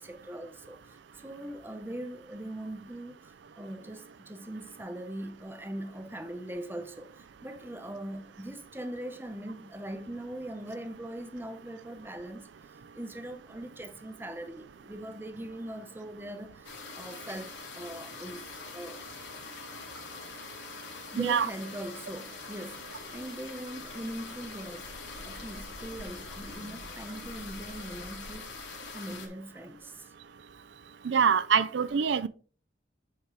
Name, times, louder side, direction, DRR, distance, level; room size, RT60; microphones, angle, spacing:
voice 1, 0.0-12.5 12.9-19.0 21.1-25.0 25.2-30.1, right 1 dB, 10° right, 0.7 m, -41 dB
sound 1, 16.6-29.3, left 4 dB, 85° left, 2.4 m, -44 dB
voice 2, 31.0-32.3, right 6 dB, 70° right, 0.4 m, -24 dB
8.0 x 4.4 x 4.7 m
head